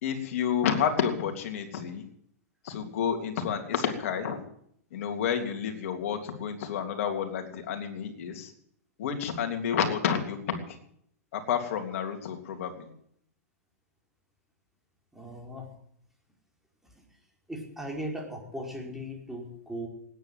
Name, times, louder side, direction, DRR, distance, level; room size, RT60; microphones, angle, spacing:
voice 1, 0.0-2.0 2.6-4.4 4.9-8.5 9.0-10.6 11.3-12.9, left 8 dB, 60° left, 4 dB, 3.3 m, -30 dB
voice 2, 15.1-15.7 17.5-19.9, equal, 5° right, -1 dB, 5.1 m, -38 dB
18.5 x 10.0 x 7.6 m, 0.67 s
hypercardioid pair, 110°, 8 cm